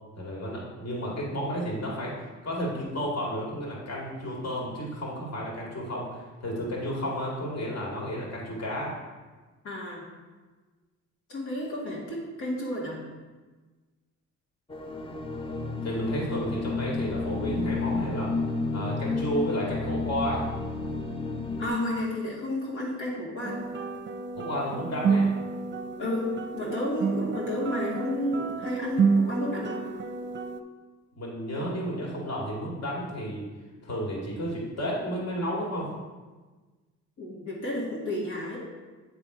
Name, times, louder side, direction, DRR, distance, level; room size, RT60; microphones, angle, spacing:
voice 1, 0.1-9.0 15.8-18.3 18.7-20.5 24.4-25.3 31.1-33.5 33.8-35.9, equal, 55° left, -3 dB, 2.2 m, -32 dB
voice 2, 9.6-10.1 11.3-13.1 21.6-23.6 26.0-29.9 37.2-38.6, left 1 dB, 80° left, -6 dB, 2.1 m, -31 dB
sound 1, 14.7-21.7, left 3 dB, 20° left, 0.7 m, -31 dB
sound 2, 23.4-30.6, right 5 dB, 40° right, 0.6 m, -29 dB
9.5 x 3.7 x 4.8 m, 1.3 s
cardioid pair, 90°, 30 cm